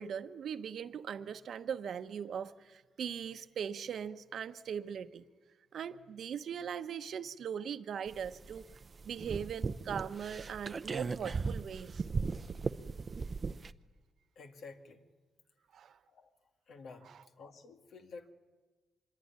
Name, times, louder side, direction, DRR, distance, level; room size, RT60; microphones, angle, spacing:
voice 1, 0.0-5.2 5.7-8.6 9.0-12.0 15.7-16.0 17.0-17.2, right 8 dB, 65° right, 10 dB, 1.1 m, -40 dB
sound 1, 8.1-13.7, right 4 dB, 35° right, 0.7 m, -38 dB
voice 2, 14.4-15.1 16.1-16.3 16.7-18.3, left 4 dB, 70° left, 5 dB, 2.2 m, -51 dB
25.0 x 22.5 x 9.7 m, 1.3 s
cardioid pair, 100°, 0 cm